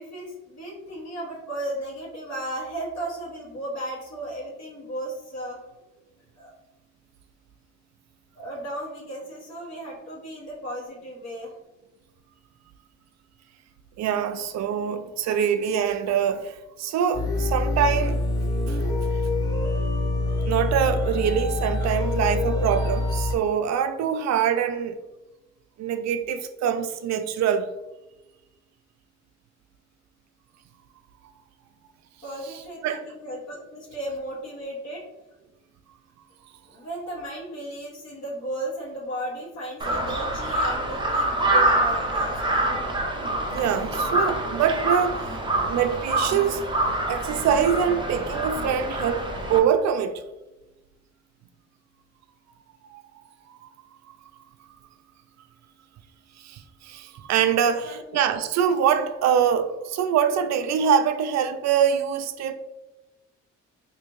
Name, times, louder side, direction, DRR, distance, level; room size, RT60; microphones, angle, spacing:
voice 1, 0.0-5.6 6.4-6.5 8.3-11.5 32.2-35.0 36.7-42.6 57.6-58.2, right 1 dB, 60° left, 1.2 m, -35 dB
voice 2, 14.0-18.2 18.7-18.8 19.1-19.2 20.5-25.0 25.8-27.7 32.4-33.0 43.5-46.7 47.1-50.2 52.9-53.0 53.5-53.7 56.4-62.5, right 8 dB, 65° right, 0.4 m, -24 dB
sound 1, 17.1-23.3, left 2 dB, 10° left, 1.0 m, -25 dB
Crow, 39.8-49.6, right 1 dB, 15° right, 0.6 m, -26 dB
3.4 x 2.7 x 3.0 m
cardioid pair, 90°, 30 cm